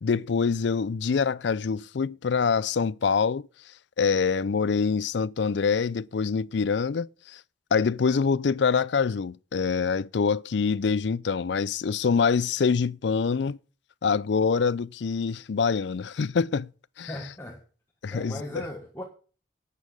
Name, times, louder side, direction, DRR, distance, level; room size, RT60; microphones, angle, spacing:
voice 1, 0.0-3.5 4.0-7.4 7.7-13.6 14.0-16.7 17.0-17.1 18.0-18.7, left 5 dB, 70° left, 0.4 m, -25 dB
voice 2, 17.1-17.6 18.1-19.0, left 1 dB, 15° left, 1.4 m, -37 dB
11.5 x 8.4 x 5.3 m
head